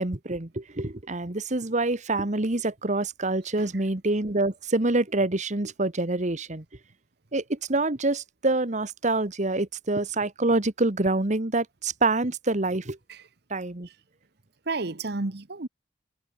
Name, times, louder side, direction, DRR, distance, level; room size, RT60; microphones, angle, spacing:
voice 1, 0.0-6.6 7.3-13.0 13.5-13.9, right 2 dB, 40° right, 1.5 m, -26 dB
voice 2, 14.7-15.7, right 3 dB, 65° right, 1.3 m, -32 dB
head